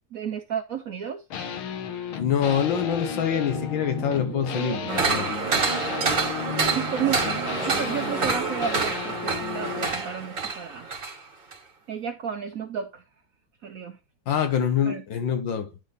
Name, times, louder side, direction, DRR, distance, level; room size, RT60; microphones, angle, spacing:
voice 1, 0.1-1.3 6.7-7.2 7.7-11.0 11.9-13.0 13.6-14.0 14.8-15.0, right 8 dB, 70° right, 0.8 m, -32 dB
sound 1, 1.3-10.0, left 8 dB, 85° left, 1.8 m, -34 dB
voice 2, 2.2-5.3 14.3-15.7, left 8 dB, 70° left, 1.6 m, -25 dB
sound 2, 2.8-8.9, right 12 dB, 90° right, 1.6 m, -38 dB
sound 3, 4.9-11.2 11.5-11.6, right 4 dB, 40° right, 2.5 m, -27 dB
10.0 x 4.0 x 3.4 m
omnidirectional pair, 2.2 m